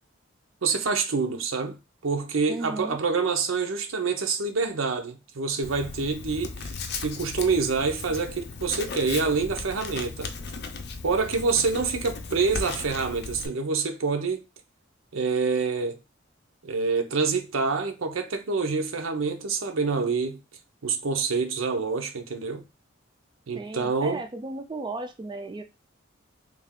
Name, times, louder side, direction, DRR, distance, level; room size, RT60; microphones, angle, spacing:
voice 1, 0.6-1.8 2.0-6.7 7.0-10.3 11.0-14.4 15.1-16.0 16.6-20.4 20.8-22.6 23.5-24.2, right 4 dB, 85° right, 0.7 m, -26 dB
voice 2, 2.5-3.0 23.5-25.6, right 2 dB, 25° right, 0.3 m, -35 dB
Writing, 5.6-13.5, left 4 dB, 55° left, 0.5 m, -37 dB
3.3 x 2.4 x 3.6 m
head